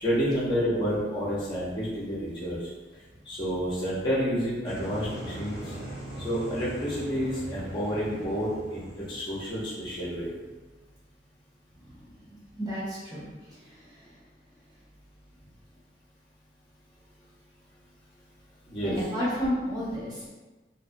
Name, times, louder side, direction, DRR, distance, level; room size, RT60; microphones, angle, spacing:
voice 1, 0.0-2.7 3.2-5.7 6.2-10.3 18.7-18.9, equal, 25° left, -8 dB, 0.5 m, -29 dB
sound 1, 4.6-10.5, right 1 dB, 55° right, 0.9 m, -40 dB
voice 2, 12.2-14.1 18.8-20.3, equal, 20° right, -8 dB, 0.7 m, -32 dB
2.6 x 2.1 x 2.4 m, 1.2 s
head